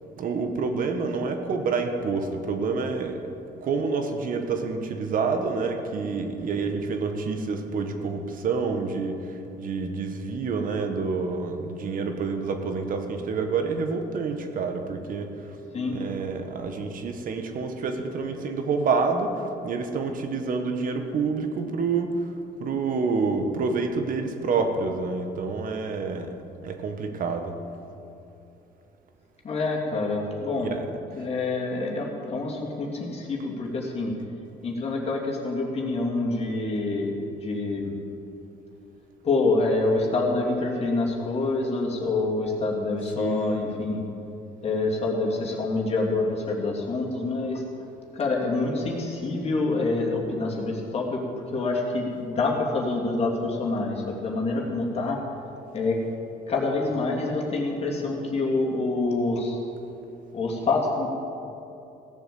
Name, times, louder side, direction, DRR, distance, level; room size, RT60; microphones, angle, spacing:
voice 1, 0.2-3.2 3.6-9.2 9.6-15.3 15.9-19.3 19.6-22.1 22.6-26.3 26.6-27.5 30.6-30.8 43.2-43.7, right 4 dB, 55° right, 6 dB, 1.6 m, -28 dB
voice 2, 29.4-30.7 31.1-34.1 34.6-37.9 39.2-44.0 44.6-47.6 48.1-55.2 55.7-56.0 56.5-59.6 60.3-61.1, left 3 dB, 35° left, -2 dB, 2.8 m, -26 dB
16.5 x 7.1 x 7.8 m, 2.7 s
cardioid pair, 110°, 17 cm